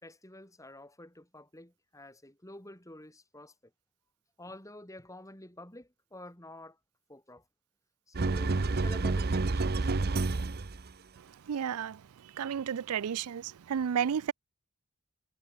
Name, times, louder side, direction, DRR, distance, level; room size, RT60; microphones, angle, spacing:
voice 1, 0.0-3.5 4.4-6.8 7.1-7.4 8.1-9.9, left 1 dB, 15° left, 5.6 m, -49 dB
sound 1, 8.1-10.9, right 3 dB, 45° right, 0.7 m, -29 dB
voice 2, 11.5-12.0 12.4-14.3, right 8 dB, 80° right, 0.4 m, -32 dB
head